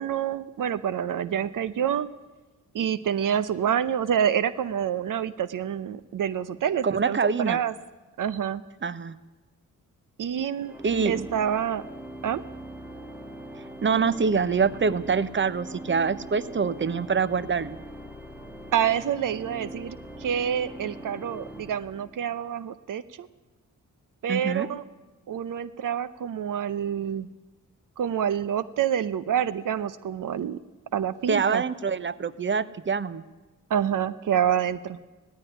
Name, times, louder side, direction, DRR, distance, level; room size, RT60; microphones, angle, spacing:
voice 1, 0.0-2.1 2.7-7.2 7.5-7.7 8.2-8.6 10.2-10.7 11.0-11.8 12.2-12.4 18.7-23.3 24.2-24.8 25.3-27.3 28.0-30.6 30.9-31.6 33.7-35.0, right 9 dB, 75° right, 15 dB, 0.7 m, -27 dB
voice 2, 6.8-7.6 8.8-9.1 10.8-11.3 13.8-17.8 24.3-24.7 31.3-33.2, right 5 dB, 35° right, 17 dB, 0.9 m, -25 dB
Organ, 10.6-22.5, right 1 dB, 5° right, 2.6 m, -41 dB
17.0 x 15.0 x 9.9 m, 1.2 s
cardioid pair, 75°, 32 cm